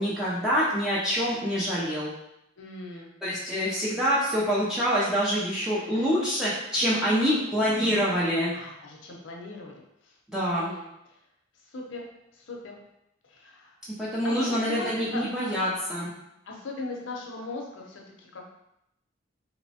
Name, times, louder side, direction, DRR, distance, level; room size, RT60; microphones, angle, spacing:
voice 1, 0.0-2.1 3.2-8.5 10.3-10.7 14.0-16.1, equal, 5° right, -8 dB, 0.4 m, -26 dB
voice 2, 2.6-3.1 5.8-6.1 7.0-7.5 8.5-11.2 11.5-12.1 12.3-12.8 13.2-13.8 14.2-15.6 16.4-18.4, left 2 dB, 70° left, 0 dB, 0.6 m, -39 dB
2.9 x 2.1 x 2.7 m, 0.83 s
head